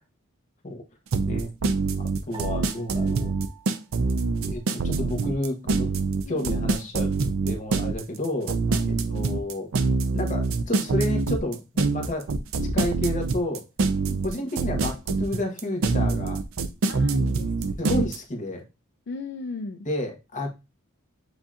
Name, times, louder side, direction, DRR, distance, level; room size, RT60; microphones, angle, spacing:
sound 1, 1.1-18.2, right 3 dB, 70° right, 0.5 m, -25 dB
voice 1, 2.0-3.3 4.4-5.9 6.3-7.1 7.4-8.6 9.1-9.7 10.1-12.3 12.7-13.6 14.2-16.4 17.8-18.7 19.9-20.5, left 1 dB, 35° left, 1.1 m, -30 dB
Piano, 2.3-4.9, right 8 dB, 20° right, 0.8 m, -49 dB
voice 2, 6.3-6.7 8.7-9.4 14.0-14.5 16.9-17.9 19.1-19.9, left 3 dB, 55° left, 0.4 m, -38 dB
7.8 x 2.8 x 2.4 m
head